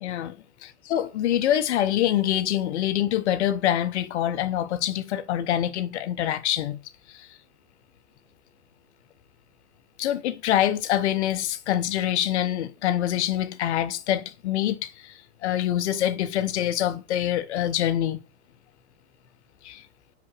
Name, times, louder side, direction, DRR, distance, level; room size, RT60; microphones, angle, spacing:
voice 1, 0.0-0.4 0.9-6.8 7.1-7.4 10.0-18.2 19.6-19.9, left 11 dB, 75° left, 0.9 m, -25 dB
6.0 x 4.9 x 6.0 m
supercardioid pair, 140°, 34 cm